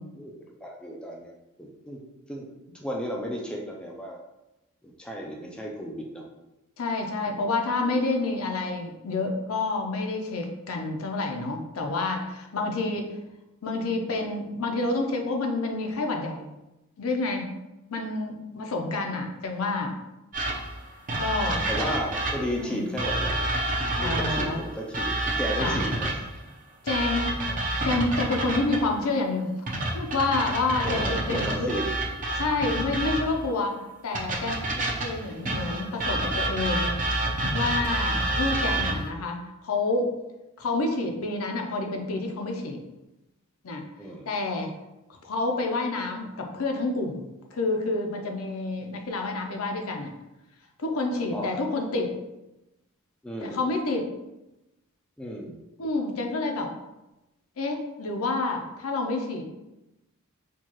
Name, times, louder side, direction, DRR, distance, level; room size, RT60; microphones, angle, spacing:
voice 1, 0.2-1.3 1.6-2.0 2.3-2.5 2.7-4.2 4.8-6.2 7.2-7.4 21.7-23.4 24.0-26.2 30.8-31.9 44.0-44.3 51.1-51.5 53.2-53.6 55.2-55.6, equal, 5° left, -1 dB, 0.3 m, -34 dB
voice 2, 6.8-13.1 13.6-16.5 17.0-17.5 17.9-20.0 21.2-21.7 22.6-22.9 24.0-24.6 25.6-25.8 26.8-27.3 27.8-31.7 32.3-37.0 37.5-40.1 40.6-42.8 43.6-43.8 44.3-44.7 45.1-50.1 50.8-52.1 53.4-54.0 55.8-56.7 57.6-59.4, left 3 dB, 65° left, 3 dB, 0.5 m, -28 dB
sound 1, 20.3-22.6 23.0-26.3 26.9-28.9 29.7-33.4 34.1-39.1, right 1 dB, 35° right, 0.7 m, -28 dB
4.4 x 2.3 x 2.9 m, 0.96 s
head